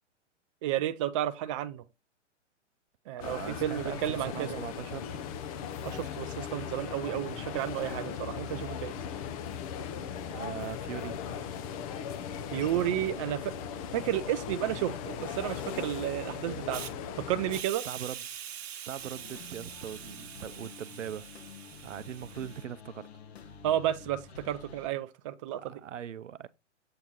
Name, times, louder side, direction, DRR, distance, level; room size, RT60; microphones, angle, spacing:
voice 1, 0.6-1.8 3.1-4.6 5.8-9.0 12.5-13.5 13.9-16.8 17.2-17.9 23.6-25.8, right 12 dB, 25° right, 0.5 m, -32 dB
sound 1, 3.2-17.6, left 7 dB, 30° left, 0.6 m, -38 dB
voice 2, 3.2-5.2 10.3-11.3 17.8-18.2 18.9-21.3 21.8-23.1 25.6-26.5, right 9 dB, 80° right, 0.6 m, -40 dB
Hiss, 16.7-16.9 17.5-22.6, right 10 dB, 55° right, 1.2 m, -44 dB
sound 2, 19.0-24.9, left 5 dB, 55° left, 1.4 m, -49 dB
7.6 x 4.5 x 3.9 m
figure-of-eight pair, 120°, 37 cm